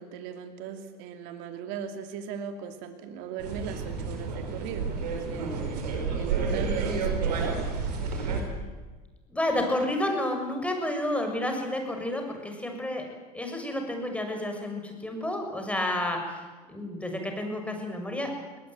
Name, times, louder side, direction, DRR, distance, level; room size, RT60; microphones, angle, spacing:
voice 1, 0.0-5.6 6.1-7.6, right 7 dB, 65° right, 7 dB, 2.7 m, -38 dB
sound 1, 3.4-8.4, right 5 dB, 85° right, 5.2 m, -30 dB
voice 2, 8.1-8.4 9.3-13.1 13.3-18.3, left 1 dB, 5° left, 3 dB, 7.1 m, -30 dB
21.5 x 19.5 x 9.4 m, 1.3 s
hypercardioid pair, 85°, 20 cm